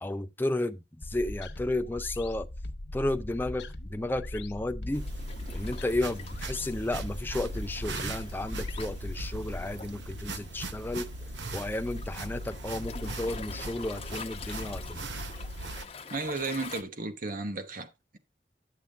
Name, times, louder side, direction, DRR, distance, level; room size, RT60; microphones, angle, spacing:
voice 1, 0.0-2.5 2.9-5.1 5.5-11.1 11.5-15.0, left 1 dB, 10° left, 0.4 m, -33 dB
sound 1, 1.0-9.7, left 1 dB, 70° left, 1.0 m, -40 dB
Waves surf, 4.9-16.8, left 5 dB, 35° left, 0.8 m, -46 dB
sound 2, 4.9-15.8, right 2 dB, 75° right, 1.0 m, -39 dB
voice 2, 16.1-18.2, right 3 dB, 50° right, 1.1 m, -34 dB
10.0 x 7.2 x 3.5 m
head